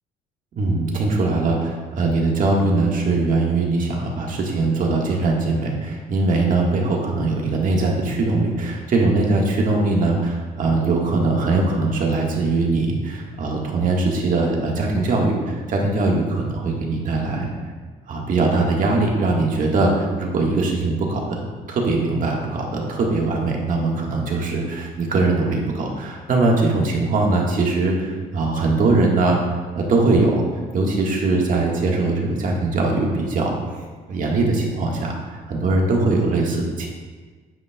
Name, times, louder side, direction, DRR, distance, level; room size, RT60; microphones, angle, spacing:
voice 1, 0.5-17.5 18.1-29.4 29.7-30.5 30.7-33.6 34.1-35.2 35.5-36.9, right 3 dB, 55° right, 0 dB, 1.6 m, -21 dB
9.5 x 7.3 x 2.3 m, 1.4 s
cardioid pair, 110°, 17 cm